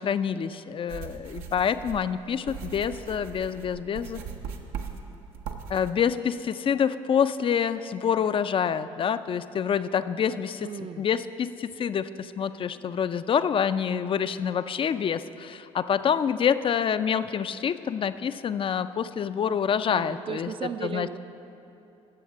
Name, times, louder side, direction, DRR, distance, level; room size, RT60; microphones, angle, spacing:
voice 1, 0.0-4.2 5.7-20.5 20.8-21.2, left 7 dB, 35° left, 13 dB, 0.4 m, -27 dB
sound 1, 0.9-5.9, right 6 dB, 70° right, 0.8 m, -39 dB
voice 2, 10.6-11.0 19.9-21.2, right 7 dB, 35° right, 11 dB, 0.5 m, -35 dB
18.5 x 7.0 x 3.6 m, 2.9 s
hypercardioid pair, 55°, 16 cm